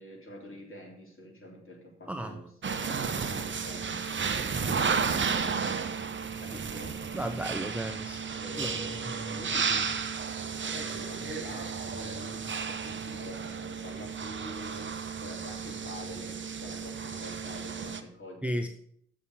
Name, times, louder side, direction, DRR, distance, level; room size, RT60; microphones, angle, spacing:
voice 1, 0.0-5.7 6.4-7.0 8.3-9.9 10.7-14.9 15.2-18.7, left 1 dB, 35° left, 0 dB, 3.4 m, -45 dB
voice 2, 2.1-2.4 7.1-8.2 8.6-8.9 9.3-9.4 18.4-18.7, right 1 dB, 5° right, 7 dB, 0.7 m, -34 dB
sound 1, 2.6-18.0, right 6 dB, 30° right, 0.9 m, -33 dB
6.9 x 6.2 x 6.7 m, 0.65 s
hypercardioid pair, 45°, 37 cm